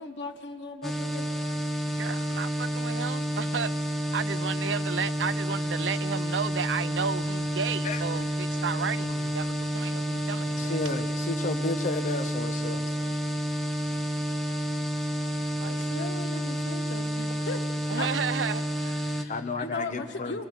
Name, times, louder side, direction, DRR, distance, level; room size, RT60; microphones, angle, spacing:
voice 1, 0.0-1.3 15.7-17.6 18.0-18.1 19.1-20.4, left 3 dB, 70° left, 1.4 m, -37 dB
sound 1, 0.8-19.2, equal, ahead, 1.0 m, -30 dB
voice 2, 1.8-11.0 15.6-15.9 17.9-19.2, right 6 dB, 75° right, 0.6 m, -33 dB
voice 3, 10.6-12.8 16.3-16.4 19.3-20.4, left 3 dB, 45° left, 1.1 m, -32 dB
28.5 x 23.5 x 8.3 m
head